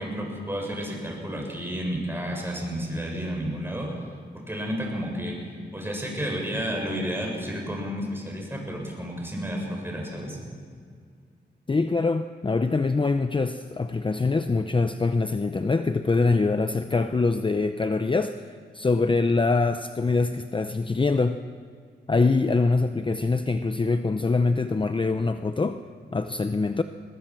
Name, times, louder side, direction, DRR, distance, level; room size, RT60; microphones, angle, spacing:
voice 1, 0.0-4.0 4.3-5.4 5.7-10.4, equal, 10° right, 0 dB, 6.8 m, -31 dB
voice 2, 11.7-18.4 18.7-21.4 22.1-25.8 26.1-26.8, left 3 dB, 25° left, 9 dB, 0.7 m, -24 dB
22.0 x 20.0 x 6.1 m, 2.1 s
cardioid pair, 80°, 18 cm